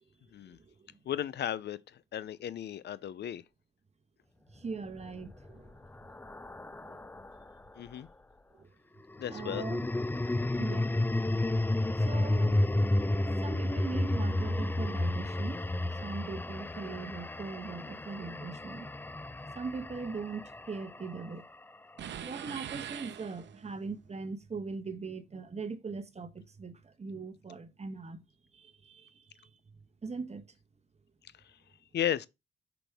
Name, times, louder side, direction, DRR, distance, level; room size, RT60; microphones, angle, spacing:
voice 1, 0.5-1.0 4.5-5.9 6.7-7.0 8.5-8.7 9.3-9.8 10.6-10.9 12.0-13.0 13.2-15.7 16.0-18.9 19.5-21.5 22.2-28.3 28.5-29.8 30.0-30.5, right 4 dB, 35° right, 1.1 m, -41 dB
voice 2, 1.1-3.4 7.8-8.1 9.2-9.6 31.9-32.3, left 10 dB, 70° left, 0.5 m, -35 dB
sound 1, 5.0-7.5 9.1-21.4, left 1 dB, 10° left, 0.4 m, -32 dB
sound 2, 22.0-23.8, right 9 dB, 80° right, 0.7 m, -42 dB
6.0 x 4.9 x 3.4 m
cardioid pair, 65°, 18 cm